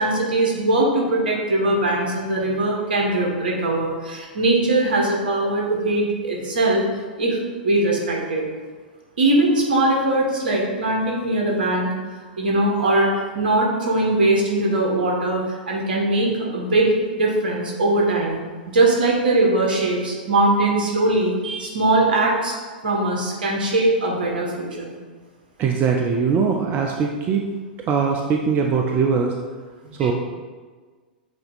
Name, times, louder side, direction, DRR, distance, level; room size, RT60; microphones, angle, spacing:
voice 1, 0.0-6.8 7.2-7.4 7.6-8.4 9.2-11.9 12.4-18.4 18.7-22.5 22.8-24.9 29.8-30.1, right 2 dB, 70° right, -1 dB, 1.5 m, -21 dB
voice 2, 25.6-27.5 27.9-29.3 30.0-30.1, right 6 dB, 35° right, 2 dB, 0.5 m, -21 dB
8.1 x 2.9 x 4.0 m, 1.4 s
figure-of-eight pair, 100°, 5 cm